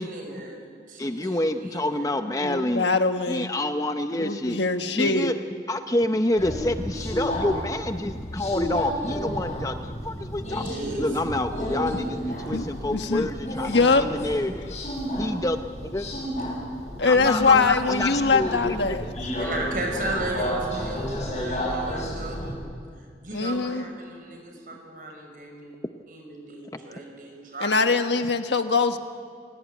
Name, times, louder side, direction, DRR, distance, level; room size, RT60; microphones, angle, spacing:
voice 1, 0.0-2.1 10.5-11.1 11.6-12.5 19.4-22.5 22.9-25.8 26.1-28.1, right 1 dB, 50° right, 2 dB, 6.1 m, -36 dB
voice 2, 1.0-2.9 3.3-4.6 4.9-5.4 5.7-10.7 11.0-14.8 15.2-16.1 17.1-19.1 26.7-26.8, left 1 dB, 20° left, 8 dB, 0.7 m, -28 dB
voice 3, 2.4-3.5 4.1-5.3 12.5-12.6 12.9-13.3 13.6-14.0 17.0-19.0 23.3-23.8 27.6-29.0, left 4 dB, 90° left, 7 dB, 1.5 m, -22 dB
Subway metro underground, 6.4-22.5, equal, 40° left, 7.9 m, -31 dB
30.0 x 17.5 x 9.2 m, 2.1 s
head